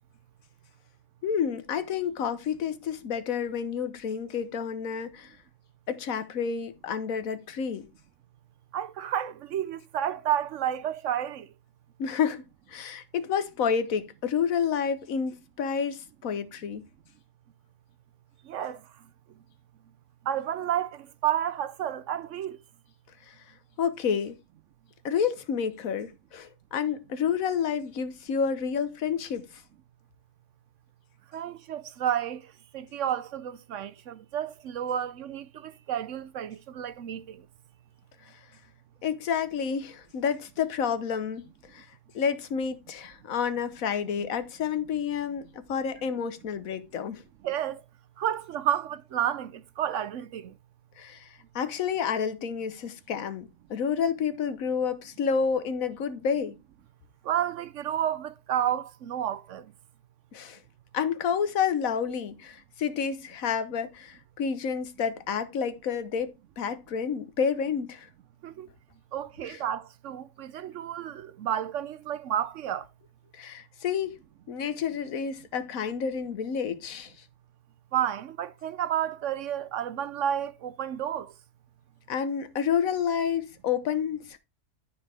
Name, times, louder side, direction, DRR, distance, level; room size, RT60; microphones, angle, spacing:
voice 1, 1.2-5.4 5.9-7.9 12.0-12.4 12.7-16.8 23.3-23.4 23.8-24.4 25.0-29.5 38.3-38.4 39.0-41.4 41.7-41.9 42.1-47.2 51.0-56.6 60.3-60.6 60.9-68.1 69.5-69.6 73.3-74.2 74.5-77.1 82.1-84.4, left 7 dB, 75° left, 1.3 m, -29 dB
voice 2, 8.7-11.5 18.5-18.8 20.3-22.6 31.3-32.4 32.7-37.4 47.4-47.8 48.2-50.5 57.2-59.7 68.4-68.7 69.1-72.9 77.9-81.3, right 10 dB, 65° right, 0.9 m, -31 dB
13.0 x 4.7 x 3.4 m
omnidirectional pair, 1.5 m